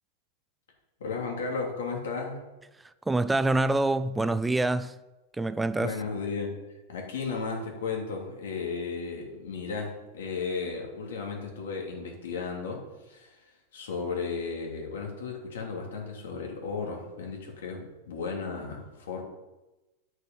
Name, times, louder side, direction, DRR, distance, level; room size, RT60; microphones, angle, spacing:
voice 1, 1.0-2.4 5.8-6.6 6.9-19.2, left 4 dB, 90° left, 2.8 m, -34 dB
voice 2, 3.1-5.0 5.3-6.0, right 2 dB, 5° right, 0.3 m, -26 dB
9.9 x 6.4 x 5.5 m
supercardioid pair, 145°, 0 cm